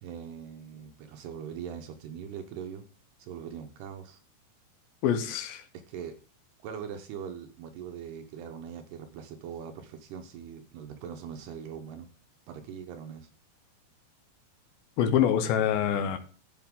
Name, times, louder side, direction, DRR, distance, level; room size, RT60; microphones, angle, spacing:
voice 1, 0.0-2.9 3.2-4.2 5.9-6.1 6.6-12.1 12.5-13.3, right 8 dB, 75° right, 2.7 m, -41 dB
voice 2, 5.0-5.6 15.0-16.2, left 9 dB, 75° left, 2.2 m, -25 dB
12.0 x 8.4 x 3.7 m
omnidirectional pair, 5.3 m